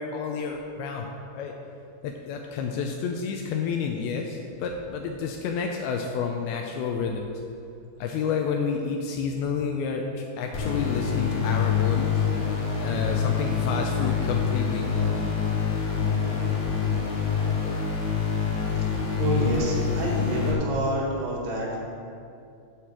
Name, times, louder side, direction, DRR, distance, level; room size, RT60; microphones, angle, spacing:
voice 1, 0.0-1.5 2.0-7.3 8.0-12.2 12.8-15.2, left 5 dB, 85° left, 2 dB, 2.5 m, -30 dB
sound 1, 10.5-20.5, left 6 dB, 65° left, 3.9 m, -26 dB
voice 2, 19.2-21.8, right 1 dB, 85° right, -2 dB, 3.9 m, -27 dB
11.5 x 5.0 x 7.3 m, 2.5 s
omnidirectional pair, 4.6 m